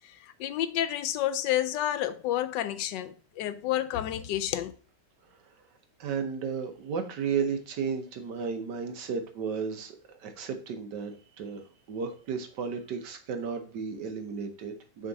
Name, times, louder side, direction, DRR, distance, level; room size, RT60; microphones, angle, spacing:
voice 1, 0.0-4.7, left 12 dB, 90° left, 1.2 m, -30 dB
voice 2, 6.0-15.1, right 6 dB, 75° right, 1.5 m, -34 dB
6.3 x 3.7 x 4.0 m
omnidirectional pair, 1.9 m